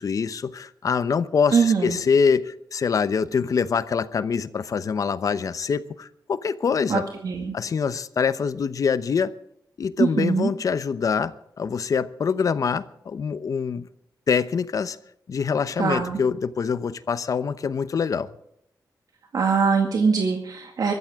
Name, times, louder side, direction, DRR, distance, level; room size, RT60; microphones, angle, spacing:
voice 1, 0.0-7.0 7.5-9.3 9.8-13.9 14.3-15.0 15.3-18.3, left 6 dB, 55° left, 0.8 m, -24 dB
voice 2, 1.5-2.0 6.9-7.5 10.0-10.5 15.8-16.2 19.3-20.9, right 5 dB, 60° right, 2.0 m, -22 dB
23.5 x 14.0 x 3.6 m
wide cardioid pair, 170°, 7 cm